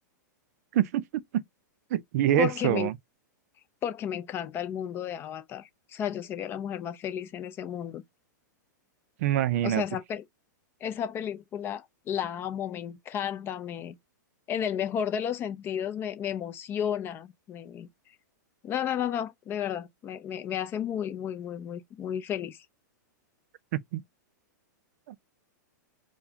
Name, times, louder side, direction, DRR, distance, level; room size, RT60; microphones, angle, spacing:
voice 1, 0.7-1.4 1.9-2.9 9.2-9.8 23.7-24.0 25.1-25.2, right 12 dB, 55° right, 0.4 m, -26 dB
voice 2, 2.4-2.9 3.8-8.0 9.6-10.2 10.8-14.0 14.5-17.9 18.6-22.7, left 9 dB, 20° left, 0.5 m, -33 dB
4.7 x 2.2 x 2.7 m
hypercardioid pair, 145°, 10 cm